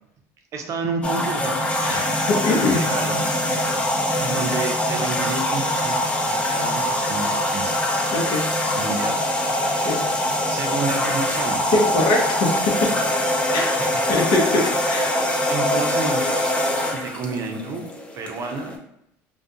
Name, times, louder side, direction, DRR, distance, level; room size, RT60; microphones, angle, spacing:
voice 1, 0.5-1.6 2.7-3.3 4.2-7.8 8.8-9.2 10.5-11.6 13.8-14.0 15.5-16.6 16.9-17.9 18.1-18.8, right 4 dB, 45° right, 3 dB, 0.5 m, -30 dB
sound 1, 1.0-18.8, left 1 dB, 15° left, 0.4 m, -23 dB
voice 2, 1.8-2.8 8.1-8.4 9.8-10.0 11.7-12.5 13.5-13.8 14.1-15.2, left 2 dB, 70° left, 0 dB, 0.7 m, -22 dB
2.3 x 2.2 x 2.7 m, 0.76 s
cardioid pair, 115°, 7 cm